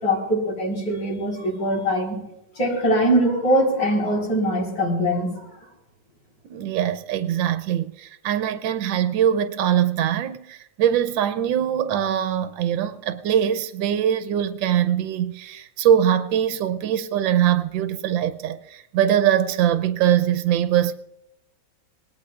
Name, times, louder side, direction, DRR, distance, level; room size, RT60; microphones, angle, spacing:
voice 1, 0.0-2.2 2.6-5.5, equal, 75° left, 4.8 m, -22 dB
voice 2, 6.4-20.9, right 10 dB, 85° right, 1.4 m, -22 dB
25.0 x 19.0 x 2.4 m
omnidirectional pair, 2.0 m